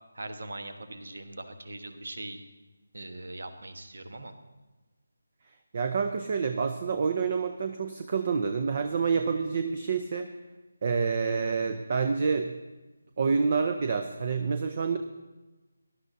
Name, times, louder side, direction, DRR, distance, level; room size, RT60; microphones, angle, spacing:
voice 1, 0.1-2.4 2.9-4.3, right 2 dB, 60° right, 8 dB, 1.2 m, -41 dB
voice 2, 5.7-10.3 10.8-12.5 13.2-15.0, right 5 dB, 40° right, 8 dB, 0.6 m, -28 dB
18.5 x 11.5 x 2.7 m, 1.2 s
figure-of-eight pair, 155°, 0 cm